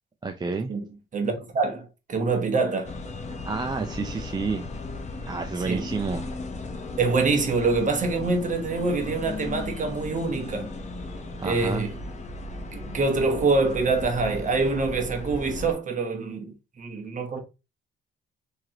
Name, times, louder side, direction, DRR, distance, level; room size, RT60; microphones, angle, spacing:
voice 1, 0.2-0.7 3.4-4.7 5.3-6.3 11.4-11.9, right 4 dB, 20° right, 0.4 m, -29 dB
voice 2, 1.1-2.9 5.7-5.9 7.0-10.7 11.4-11.9 12.7-17.4, right 3 dB, 40° right, 1.1 m, -25 dB
sound 1, 2.8-15.7, left 2 dB, 35° left, 0.9 m, -36 dB
3.7 x 3.1 x 2.9 m
cardioid pair, 90°, 20 cm